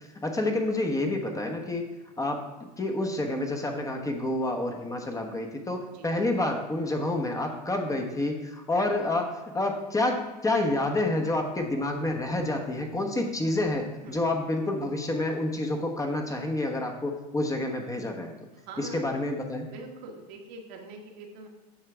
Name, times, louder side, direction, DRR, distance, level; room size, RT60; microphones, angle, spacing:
voice 1, 0.0-1.8 2.2-2.5 2.8-18.3 18.8-19.7, left 2 dB, 15° left, 3 dB, 1.2 m, -28 dB
voice 2, 18.5-19.2 19.7-21.5, right 2 dB, 65° right, 1 dB, 1.5 m, -44 dB
8.6 x 5.7 x 3.4 m, 1.2 s
hypercardioid pair, 90°, 20 cm